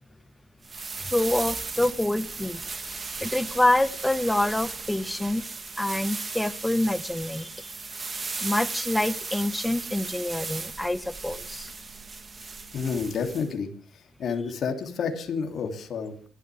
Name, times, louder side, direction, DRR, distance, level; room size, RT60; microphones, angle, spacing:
sound 1, 0.6-13.5, right 4 dB, 30° right, 2.1 m, -36 dB
voice 1, 1.0-2.6 3.2-5.5 5.8-7.7 8.4-11.7, left 1 dB, 10° left, 15 dB, 1.0 m, -26 dB
voice 2, 12.7-13.7 14.2-16.3, left 5 dB, 55° left, 5 dB, 2.9 m, -30 dB
24.5 x 12.5 x 3.5 m, 0.41 s
cardioid pair, 90°, 0 cm